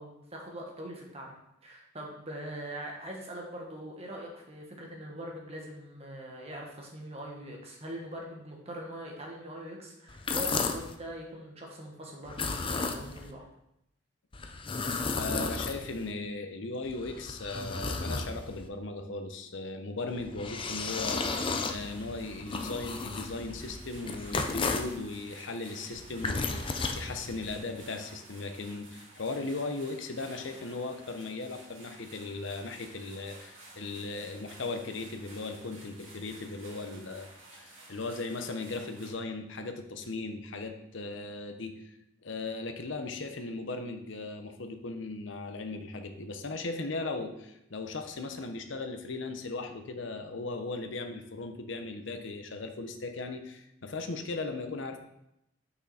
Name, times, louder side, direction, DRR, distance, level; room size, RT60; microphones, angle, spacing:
voice 1, 0.0-1.4 1.6-13.5, right 1 dB, 30° right, -1 dB, 1.4 m, -42 dB
sound 1, 10.1-11.0 12.3-13.3 14.3-16.1 16.8-18.7 20.1-25.0 25.9-27.6, left 4 dB, 25° left, 0.5 m, -34 dB
voice 2, 15.2-37.3 37.5-41.9 42.2-55.0, left 3 dB, 65° left, 6 dB, 0.8 m, -37 dB
sound 2, 20.6-39.1, right 2 dB, 70° right, 2.5 m, -52 dB
6.3 x 6.0 x 4.2 m, 0.82 s
head